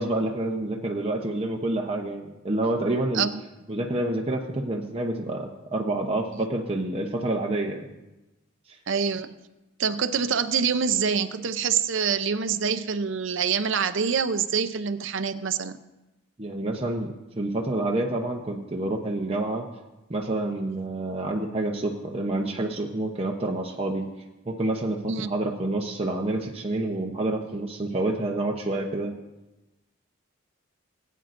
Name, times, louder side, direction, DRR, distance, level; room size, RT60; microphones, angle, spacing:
voice 1, 0.0-3.3 3.7-8.0 16.4-19.6 20.1-24.1 24.5-29.1, right 2 dB, 30° right, 0 dB, 0.8 m, -28 dB
voice 2, 8.9-9.3 9.8-15.8 25.1-25.3, right 6 dB, 60° right, 12 dB, 0.6 m, -26 dB
20.5 x 9.2 x 2.6 m, 1.0 s
head